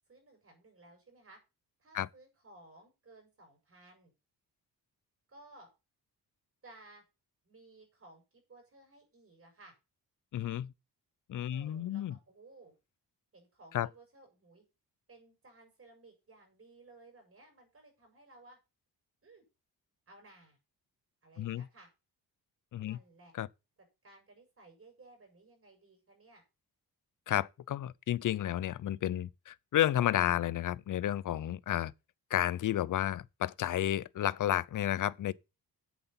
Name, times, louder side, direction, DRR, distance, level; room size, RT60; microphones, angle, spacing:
voice 1, 0.1-1.4 1.8-4.1 5.3-5.7 6.6-7.0 7.4-9.7 11.5-12.7 13.3-14.6 15.1-18.6 19.2-19.4 20.1-20.6 21.2-21.9 22.8-23.3 24.0-26.4, right 2 dB, 35° right, 5.7 m, -58 dB
voice 2, 10.3-10.7 11.3-12.1 13.7-13.9 21.4-21.7 22.7-23.0 23.3-23.5 27.3-31.9 32.3-35.3, left 12 dB, 55° left, 0.6 m, -31 dB
8.0 x 8.0 x 5.6 m
cardioid pair, 105°, 38 cm